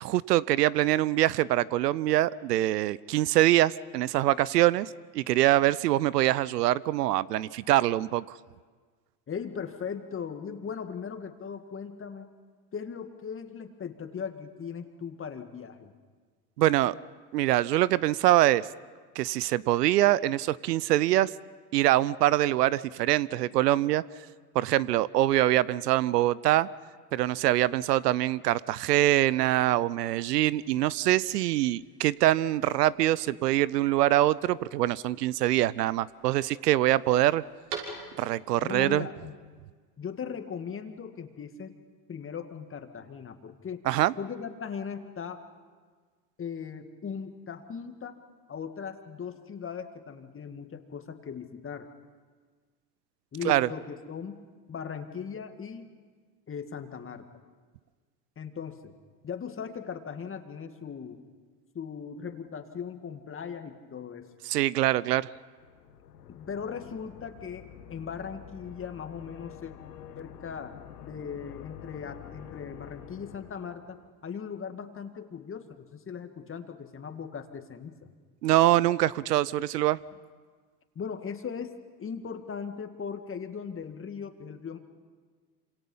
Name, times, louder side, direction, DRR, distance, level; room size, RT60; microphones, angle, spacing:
voice 1, 0.0-4.9 5.1-8.4 16.6-16.9 17.3-18.7 19.2-21.3 21.7-24.0 24.5-26.7 27.1-37.4 38.2-39.1 43.9-44.1 53.4-53.7 64.5-65.3 78.4-80.0, right 15 dB, 85° right, 20 dB, 0.7 m, -24 dB
voice 2, 9.3-12.3 12.7-15.9 38.6-39.4 40.0-41.7 42.1-43.8 44.2-45.4 46.4-48.2 48.5-51.9 53.3-55.9 56.5-57.3 58.4-58.9 59.2-61.2 61.7-64.3 66.3-69.7 70.2-70.7 71.0-78.1 81.0-81.7 82.0-84.8, left 6 dB, 25° left, 7 dB, 2.0 m, -38 dB
sound 1, 30.0-38.5, right 5 dB, 65° right, 6.3 m, -48 dB
sound 2, 65.6-74.1, left 10 dB, 85° left, 1.5 m, -48 dB
27.0 x 26.5 x 5.6 m, 1.5 s
hypercardioid pair, 90°, 47 cm